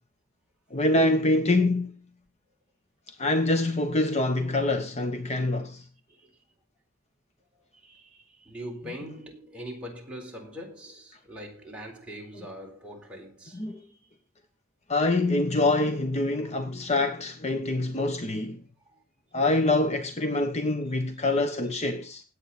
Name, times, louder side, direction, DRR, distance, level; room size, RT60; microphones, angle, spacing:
voice 1, 0.7-2.0 3.1-5.9 13.5-13.8 14.9-18.6 19.3-22.2, left 2 dB, 35° left, 1.1 m, -25 dB
voice 2, 7.7-14.0 16.4-16.6 18.8-19.0, equal, 5° right, 4.1 m, -42 dB
18.0 x 8.5 x 4.2 m
head